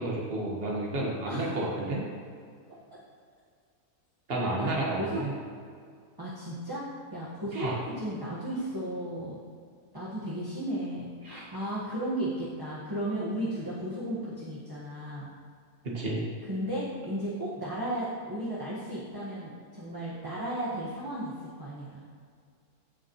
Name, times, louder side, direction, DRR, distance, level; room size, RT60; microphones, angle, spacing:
voice 1, 0.0-2.0 4.3-5.3 7.5-7.8 11.2-11.5 15.8-16.2, right 2 dB, 40° right, -3 dB, 1.8 m, -31 dB
voice 2, 6.2-6.9 7.1-7.7 8.0-9.4 9.9-15.3 16.4-22.0, right 1 dB, 15° right, -8 dB, 1.5 m, -34 dB
15.5 x 5.7 x 3.2 m, 2.1 s
omnidirectional pair, 1.6 m